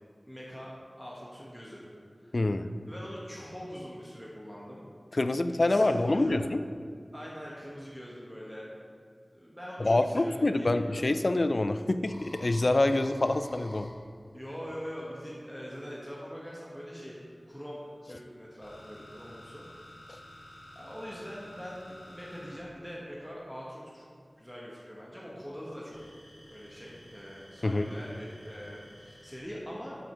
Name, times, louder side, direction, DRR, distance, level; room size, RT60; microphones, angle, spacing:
voice 1, 0.3-1.8 2.2-2.5 2.8-4.8 5.6-6.4 7.1-8.6 9.3-11.1 14.3-17.2 17.5-17.8 18.1-19.6 20.1-20.2 20.7-24.1 24.4-26.0 26.5-30.0, equal, 5° right, -5 dB, 1.4 m, -43 dB
voice 2, 2.3-2.7 5.1-6.6 9.8-13.9 27.6-27.9, left 2 dB, 60° left, 10 dB, 0.4 m, -26 dB
sound 1, 12.0-15.5 16.6-24.0 25.9-29.4, left 1 dB, 90° left, 1.7 m, -52 dB
7.7 x 5.1 x 6.3 m, 2.1 s
wide cardioid pair, 60°, 0 cm